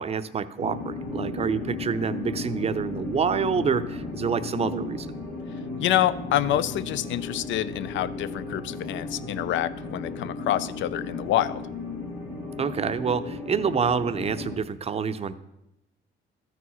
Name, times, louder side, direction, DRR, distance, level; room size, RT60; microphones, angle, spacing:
voice 1, 0.0-5.1 12.6-15.3, right 6 dB, 30° right, 12 dB, 0.5 m, -27 dB
sound 1, 0.6-14.6, left 3 dB, 90° left, 1.9 m, -35 dB
voice 2, 5.8-11.6, left 12 dB, 75° left, 16 dB, 0.4 m, -27 dB
13.5 x 4.7 x 4.1 m, 0.89 s
cardioid pair, 90°, 20 cm